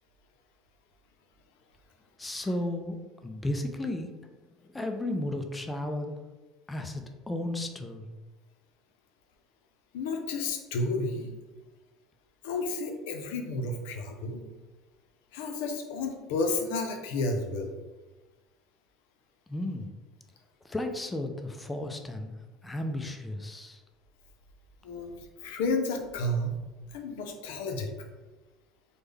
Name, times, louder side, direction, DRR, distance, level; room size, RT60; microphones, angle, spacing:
voice 1, 2.2-3.0 3.2-4.3 4.6-6.2 6.7-8.1 19.5-19.9 20.6-22.3 22.6-23.8, left 1 dB, 15° left, 5 dB, 0.4 m, -34 dB
voice 2, 9.9-11.3 12.4-14.4 15.3-17.7 24.8-26.5 26.9-27.9, left 2 dB, 85° left, 4 dB, 0.5 m, -31 dB
3.5 x 2.1 x 3.3 m, 1.2 s
supercardioid pair, 105°, 0 cm